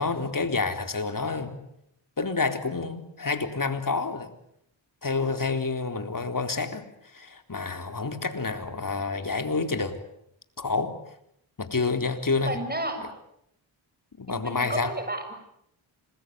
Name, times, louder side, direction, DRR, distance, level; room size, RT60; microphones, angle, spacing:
voice 1, 0.0-1.6 2.2-4.3 5.0-6.9 7.1-10.0 10.6-10.9 11.6-12.6 14.2-14.9, left 4 dB, 40° left, 7 dB, 4.0 m, -28 dB
voice 2, 12.4-13.0 14.3-15.3, right 1 dB, 20° right, 7 dB, 6.8 m, -32 dB
26.5 x 21.5 x 9.5 m, 0.76 s
cardioid pair, 45°, 49 cm